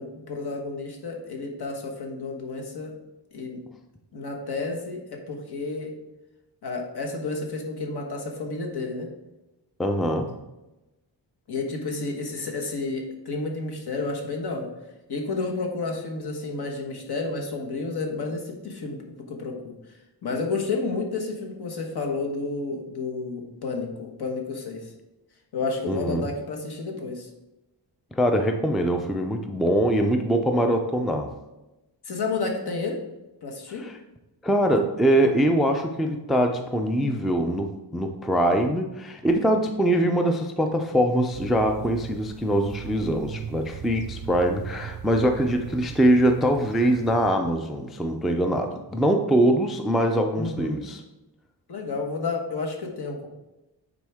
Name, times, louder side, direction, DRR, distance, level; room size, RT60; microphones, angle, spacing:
voice 1, 0.0-3.0 3.3-3.6 4.1-6.0 6.6-9.1 11.5-14.7 15.1-19.0 19.3-19.7 20.2-24.9 25.5-27.3 32.0-33.0 33.4-33.9 50.4-50.8 51.7-53.3, left 3 dB, 60° left, 1 dB, 1.4 m, -31 dB
voice 2, 9.8-10.3 25.9-26.3 28.1-31.3 33.8-33.9 34.4-51.0, right 1 dB, ahead, 5 dB, 0.3 m, -23 dB
sound 1, 41.3-47.3, right 8 dB, 60° right, 0.5 m, -38 dB
9.1 x 4.1 x 3.5 m, 0.99 s
wide cardioid pair, 145°, 43 cm